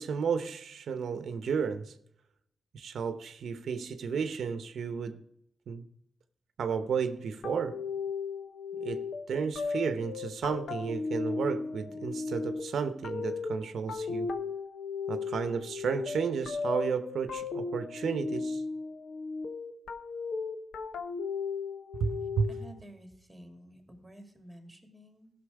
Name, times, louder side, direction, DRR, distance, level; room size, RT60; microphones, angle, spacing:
voice 1, 0.0-1.9 2.7-5.2 5.7-5.8 6.6-7.8 8.7-14.3 15.1-18.6 22.0-22.5, right 6 dB, 90° right, 0.8 m, -33 dB
sound 1, 7.4-22.8, left 4 dB, 85° left, 0.9 m, -36 dB
voice 2, 22.5-25.3, right 1 dB, 5° right, 2.4 m, -51 dB
15.5 x 6.0 x 4.8 m
wide cardioid pair, 100°, 0 cm